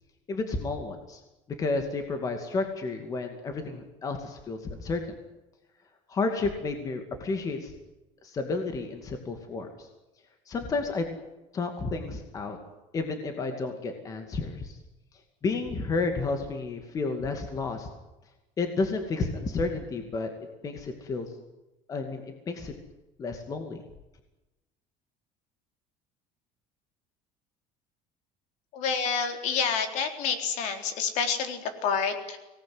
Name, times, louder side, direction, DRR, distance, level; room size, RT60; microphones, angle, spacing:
voice 1, 0.3-1.2 1.6-5.0 6.1-7.7 8.2-9.9 10.5-11.0 11.5-12.6 12.9-14.8 15.4-17.9 18.6-20.3 20.6-21.3 21.9-22.7 23.2-23.8, left 3 dB, 25° left, 5 dB, 2.4 m, -31 dB
voice 2, 28.7-32.4, left 6 dB, 55° left, 6 dB, 4.0 m, -28 dB
24.5 x 19.0 x 9.6 m, 1.0 s
cardioid pair, 175°, 14 cm